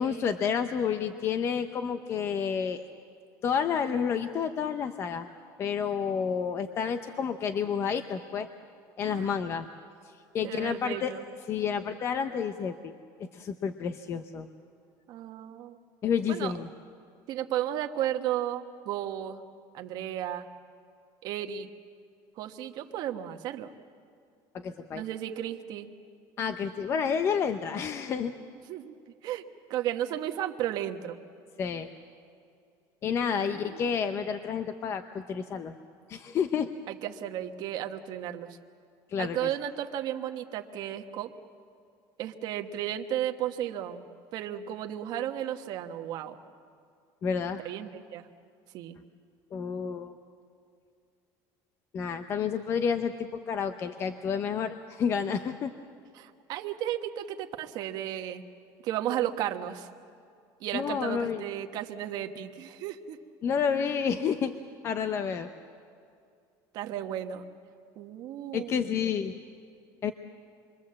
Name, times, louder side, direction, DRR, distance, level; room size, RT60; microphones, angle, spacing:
voice 1, 0.0-2.8 3.4-5.3 5.6-8.5 9.0-9.7 10.3-11.1 11.5-12.9 13.2-14.5 16.0-16.7 24.5-25.0 26.4-28.3 31.6-31.9 33.0-35.8 36.1-36.7 39.1-39.4 47.2-47.6 49.5-50.1 51.9-55.7 60.7-61.4 63.4-64.5 64.8-65.5 68.5-69.3 70.0-70.1, left 7 dB, 30° left, 9 dB, 0.7 m, -30 dB
voice 2, 10.4-11.2 15.1-15.8 16.3-16.5 17.3-19.4 19.7-20.5 21.2-21.7 22.4-23.7 24.9-25.9 28.7-28.9 29.2-29.4 29.7-31.2 33.4-33.9 36.9-38.6 39.2-41.3 42.2-44.0 44.3-46.4 47.6-48.3 48.7-49.0 56.1-58.4 58.8-59.9 60.6-63.2 66.7-67.4 68.0-69.0, right 11 dB, 45° right, 5 dB, 1.2 m, -34 dB
27.5 x 23.0 x 7.6 m, 2.3 s
cardioid pair, 175°, 9 cm